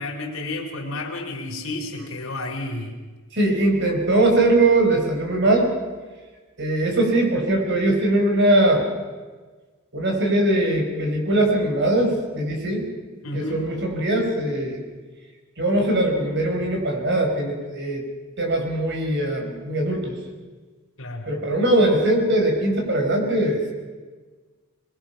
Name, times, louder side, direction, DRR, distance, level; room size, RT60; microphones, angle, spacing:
voice 1, 0.0-3.0 13.2-13.6 21.0-21.3, left 2 dB, 75° left, 1 dB, 4.1 m, -31 dB
voice 2, 3.3-5.7 6.6-8.8 9.9-12.9 13.3-14.8 15.6-18.0 18.4-20.2 21.3-23.6, right 1 dB, 55° right, 2 dB, 5.1 m, -21 dB
23.0 x 22.5 x 5.9 m, 1.4 s
head